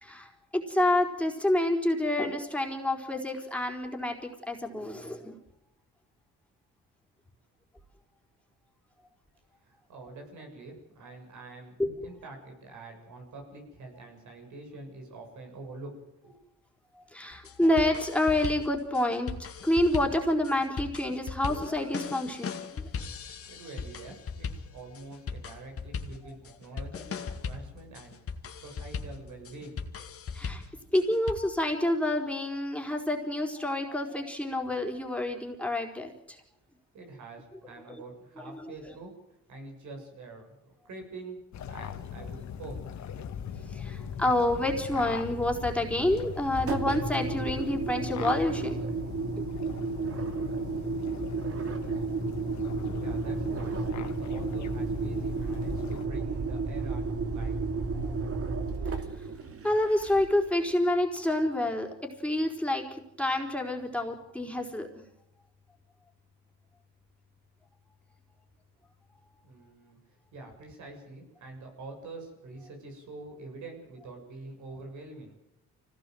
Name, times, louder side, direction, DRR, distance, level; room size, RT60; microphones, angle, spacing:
voice 1, 0.0-5.4 11.8-11.9 17.0-19.3 19.6-22.5 26.7-27.0 30.3-30.6 30.9-36.4 38.5-38.7 43.6-48.8 49.4-49.5 59.6-61.9 62.2-64.9, left 1 dB, 5° left, 0 dB, 4.3 m, -28 dB
voice 2, 9.6-11.7 12.0-16.4 23.5-29.8 36.9-39.1 39.5-41.4 41.7-42.8 53.0-57.6 69.4-70.0 70.3-75.4, right 3 dB, 75° right, 3 dB, 7.2 m, -46 dB
sound 1, 17.3-31.3, left 5 dB, 50° left, 2.2 m, -39 dB
sound 2, 41.5-56.1, left 8 dB, 65° left, 1.9 m, -40 dB
Engine, 46.5-60.5, right 4 dB, 50° right, 2.7 m, -33 dB
25.0 x 18.0 x 7.9 m, 0.86 s
cardioid pair, 90°, 30 cm